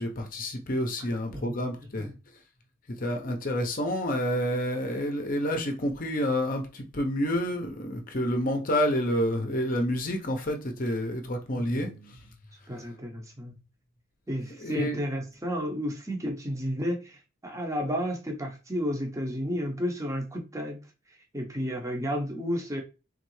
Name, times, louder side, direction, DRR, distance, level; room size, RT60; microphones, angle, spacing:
voice 1, 0.0-2.1 3.0-11.9 14.6-15.0, equal, 40° left, 0.7 m, -29 dB
voice 2, 1.0-1.5 1.8-2.1 11.7-12.3 12.7-13.5 14.3-20.8 21.1-22.8, equal, 15° right, 0.8 m, -32 dB
3.8 x 3.2 x 3.1 m
head